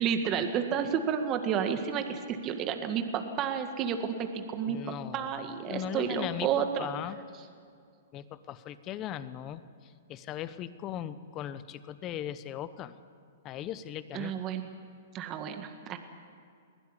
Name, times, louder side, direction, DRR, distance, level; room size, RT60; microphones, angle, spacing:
voice 1, 0.0-4.8 5.1-6.9 14.1-14.6 15.1-16.0, right 8 dB, 30° right, 7 dB, 1.8 m, -31 dB
voice 2, 4.6-5.3 5.7-7.2 8.1-12.9 13.4-14.3, left 10 dB, 30° left, 14 dB, 1.0 m, -38 dB
21.0 x 16.0 x 10.0 m, 2.3 s
hypercardioid pair, 135°, 0 cm